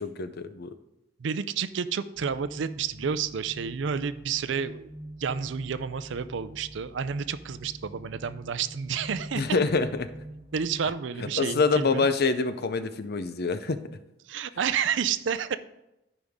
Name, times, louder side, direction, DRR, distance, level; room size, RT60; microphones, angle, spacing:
voice 1, 0.2-0.7 9.3-10.1 11.4-13.8, left 4 dB, 55° left, 11 dB, 0.6 m, -25 dB
voice 2, 1.2-4.9 5.2-9.5 10.5-12.1 14.3-15.6, right 7 dB, 70° right, 14 dB, 0.5 m, -30 dB
sound 1, 2.2-10.9, right 1 dB, 40° right, 2.4 m, -44 dB
14.0 x 5.2 x 3.6 m, 0.90 s
head